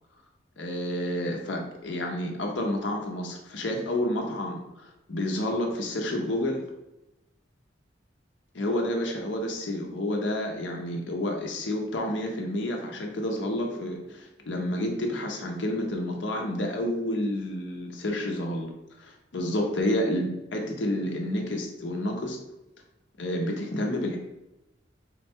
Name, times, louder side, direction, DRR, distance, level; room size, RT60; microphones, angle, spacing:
voice 1, 0.6-6.6 8.5-18.7 19.0-22.4 23.2-24.2, left 1 dB, 80° left, 1 dB, 0.7 m, -30 dB
3.8 x 2.2 x 4.3 m, 0.93 s
head